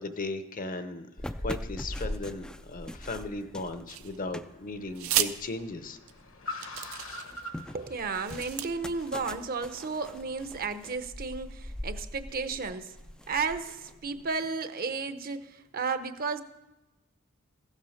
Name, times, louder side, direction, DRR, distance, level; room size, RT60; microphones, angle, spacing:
voice 1, 0.0-6.0, left 3 dB, 40° left, 10 dB, 0.7 m, -37 dB
sound 1, 1.2-6.4 6.7-14.4, left 1 dB, 5° left, 0.3 m, -41 dB
Car, 3.7-11.0, left 2 dB, 70° left, 1.3 m, -46 dB
sound 2, 3.9-4.4 4.9-5.3 6.1-6.2 6.6-7.4 8.0-8.7, right 12 dB, 80° right, 0.6 m, -32 dB
voice 2, 7.7-12.9 13.3-16.4, right 4 dB, 45° right, 10 dB, 0.8 m, -33 dB
15.0 x 7.3 x 6.4 m, 1.0 s
head